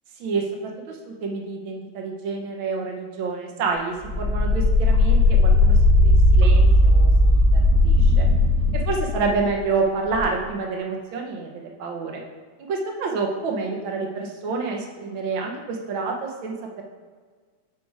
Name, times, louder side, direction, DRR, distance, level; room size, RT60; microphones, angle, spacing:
voice 1, 0.2-8.3 8.7-12.2 12.7-16.8, right 4 dB, 75° right, 1 dB, 1.7 m, -28 dB
sound 1, 4.0-9.6 10.1-10.2, left 1 dB, 45° right, 1.5 m, -17 dB
6.8 x 4.8 x 4.7 m, 1.5 s
omnidirectional pair, 2.2 m